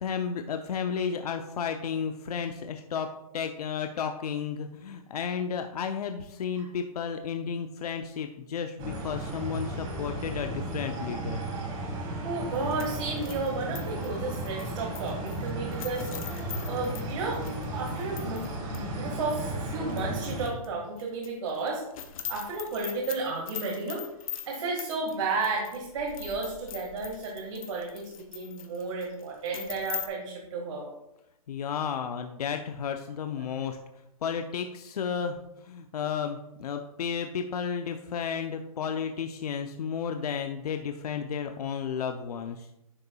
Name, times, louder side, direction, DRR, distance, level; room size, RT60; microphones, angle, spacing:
voice 1, 0.0-11.4 31.5-33.8 34.2-35.4 35.6-42.7, left 7 dB, 80° left, 6 dB, 0.7 m, -33 dB
sound 1, 8.8-20.5, right 1 dB, 30° right, 1.8 m, -34 dB
voice 2, 12.2-17.4 17.7-21.8 22.3-24.0 24.5-30.9 33.4-33.5 36.0-36.1, right 3 dB, 55° right, -2 dB, 1.8 m, -33 dB
sound 2, 12.5-18.5 18.7-18.8 19.3-20.7 21.0-30.1, left 8 dB, 65° left, 1.0 m, -42 dB
11.0 x 6.8 x 2.3 m, 0.86 s
hypercardioid pair, 160°, 19 cm